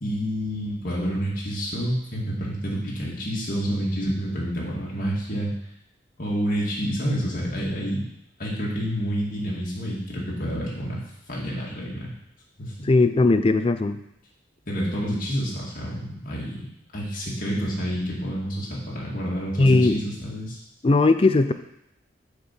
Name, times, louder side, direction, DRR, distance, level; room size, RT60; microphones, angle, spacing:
voice 1, 0.0-5.5 6.2-8.1 8.4-11.0 11.3-12.1 12.6-12.9 14.7-20.6, equal, 50° left, -5 dB, 2.1 m, -28 dB
voice 2, 12.9-14.0 19.6-20.0 20.8-21.5, left 2 dB, 30° left, 10 dB, 0.4 m, -18 dB
6.6 x 4.5 x 6.0 m, 0.78 s
head